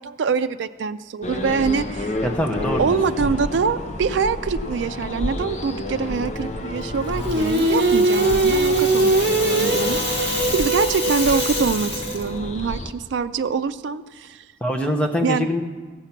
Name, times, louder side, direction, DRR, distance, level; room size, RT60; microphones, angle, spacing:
voice 1, 0.0-2.1 2.6-14.4 15.2-15.5, right 5 dB, 85° right, 10 dB, 0.4 m, -24 dB
sound 1, 1.2-12.9, left 1 dB, 40° left, 0.7 m, -30 dB
voice 2, 2.2-3.0 14.6-15.6, left 1 dB, 5° left, 2 dB, 0.8 m, -23 dB
Rattle (instrument), 7.0-12.3, left 3 dB, 85° left, 1.8 m, -30 dB
Singing, 7.2-12.4, right 2 dB, 55° right, 0.7 m, -21 dB
14.5 x 6.9 x 5.9 m, 1.3 s
head